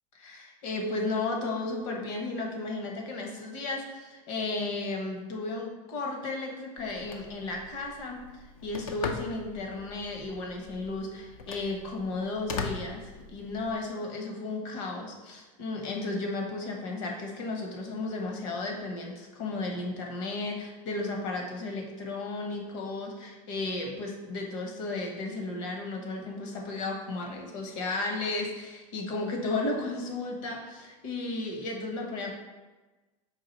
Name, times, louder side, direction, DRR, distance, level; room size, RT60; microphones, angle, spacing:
voice 1, 0.2-32.3, left 2 dB, 65° left, 1 dB, 1.0 m, -34 dB
Telephone, 6.8-13.8, left 5 dB, 85° left, 0.5 m, -41 dB
4.7 x 2.5 x 4.1 m, 1.2 s
supercardioid pair, 100°, 18 cm